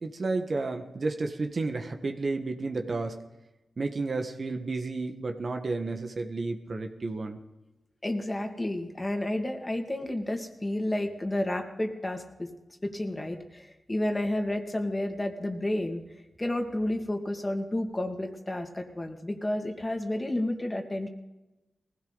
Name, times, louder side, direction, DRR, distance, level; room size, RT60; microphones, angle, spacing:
voice 1, 0.0-3.2 3.8-7.4, right 3 dB, 55° right, 5 dB, 1.5 m, -31 dB
voice 2, 8.0-12.5 12.8-16.0 16.4-21.1, left 1 dB, 25° left, 4 dB, 2.2 m, -31 dB
19.0 x 16.0 x 4.1 m, 1.0 s
cardioid pair, 55°, 0 cm